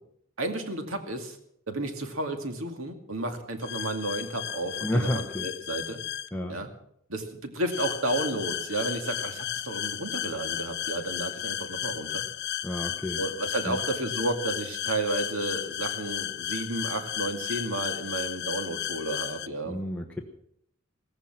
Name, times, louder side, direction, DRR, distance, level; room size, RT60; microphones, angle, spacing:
voice 1, 0.4-1.4 1.7-6.0 6.5-6.7 7.1-12.3 13.2-19.8, right 2 dB, 90° right, 6 dB, 2.2 m, -32 dB
sound 1, 3.6-6.3 7.7-19.5, left 12 dB, 55° left, 0.6 m, -34 dB
voice 2, 4.8-5.5 6.3-6.6 12.6-13.2 13.7-13.8 19.7-20.2, equal, 5° left, 0 dB, 1.2 m, -30 dB
16.0 x 14.5 x 6.0 m, 0.69 s
head